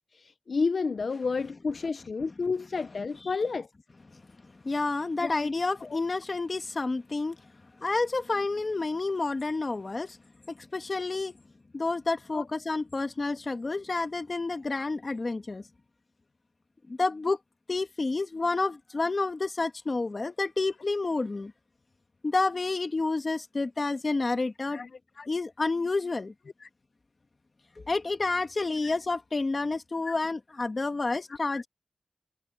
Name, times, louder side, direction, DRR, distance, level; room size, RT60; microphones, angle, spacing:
voice 1, 0.1-3.7 5.2-6.0 12.3-12.4 24.7-24.9 25.2-25.3 26.6-26.7 28.8-28.9 30.1-30.2 31.5-31.6, left 4 dB, 90° left, 0.6 m, -31 dB
voice 2, 4.6-7.4 7.8-10.2 10.5-11.4 11.7-15.6 16.9-17.4 17.7-21.5 22.2-24.8 25.3-26.3 27.8-31.7, left 3 dB, 55° left, 1.7 m, -29 dB
wide cardioid pair, 70°, 0 cm